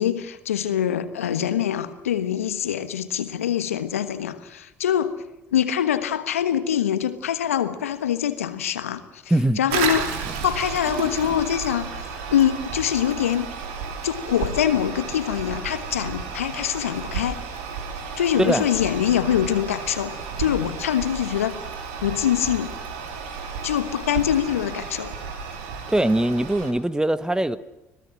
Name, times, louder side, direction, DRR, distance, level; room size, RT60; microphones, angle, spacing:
voice 1, 0.0-5.1 5.5-9.2 9.6-10.2 10.4-13.5 14.0-17.4 18.2-20.1 20.4-21.6 22.0-22.7 23.6-25.1, left 10 dB, 85° left, 12 dB, 1.3 m, -24 dB
Toilet flush, 9.7-26.7, right 5 dB, 75° right, 3.3 m, -32 dB
voice 2, 25.9-27.6, right 1 dB, 10° right, 14 dB, 1.5 m, -21 dB
26.0 x 18.0 x 7.7 m, 0.95 s
figure-of-eight pair, 50°, 7 cm